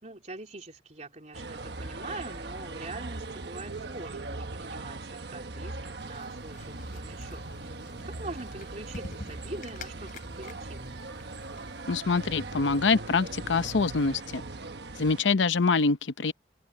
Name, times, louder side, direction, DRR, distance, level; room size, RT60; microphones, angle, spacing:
voice 1, 0.0-11.1, right 2 dB, 40° right, 3.7 m, -43 dB
sound 1, 1.3-15.2, right 2 dB, 65° right, 1.2 m, -40 dB
sound 2, 6.0-12.8, left 2 dB, 45° left, 4.5 m, -48 dB
voice 2, 11.9-14.4 15.0-16.3, left 4 dB, 85° left, 0.7 m, -25 dB
head